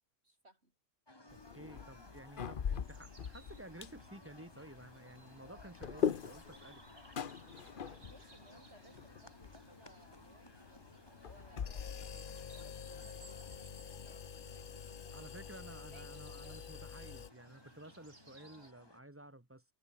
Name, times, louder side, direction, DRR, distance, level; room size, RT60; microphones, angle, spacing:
voice 1, 0.2-0.7 7.8-15.6 15.9-16.6, right 1 dB, 50° right, 8.1 m, -64 dB
sound 1, 1.1-19.0, left 1 dB, 20° left, 2.8 m, -60 dB
sound 2, 1.3-17.3, left 7 dB, 45° left, 0.9 m, -44 dB
voice 2, 1.3-6.8 15.1-19.6, right 1 dB, 10° right, 1.4 m, -53 dB
sound 3, 2.8-18.7, right 3 dB, 75° right, 4.5 m, -64 dB
omnidirectional pair, 1.4 m